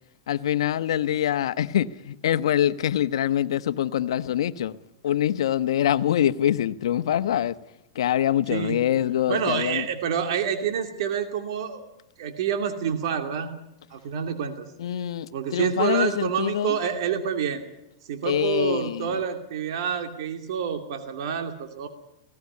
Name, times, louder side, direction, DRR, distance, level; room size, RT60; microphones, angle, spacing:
voice 1, 0.3-4.8 5.0-7.5 7.9-9.9 14.8-16.8 18.2-19.2, left 11 dB, 80° left, 1.0 m, -24 dB
voice 2, 9.3-11.8 12.2-13.5 13.9-14.7 15.3-17.6 18.1-21.9, right 7 dB, 65° right, 2.5 m, -27 dB
19.0 x 17.5 x 9.7 m
hypercardioid pair, 130°, 3 cm